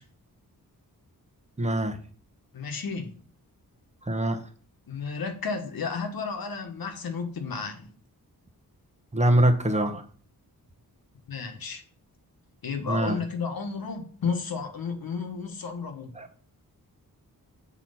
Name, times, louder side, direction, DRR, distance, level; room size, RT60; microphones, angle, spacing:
voice 1, 1.6-2.0 4.1-4.4 9.1-10.0 12.9-13.2 16.2-16.3, right 1 dB, 20° right, 0.9 m, -23 dB
voice 2, 2.5-3.1 4.9-7.9 11.3-11.8 12.6-16.1, left 5 dB, 75° left, 1.5 m, -32 dB
7.8 x 4.4 x 5.6 m
wide cardioid pair, 145°, 36 cm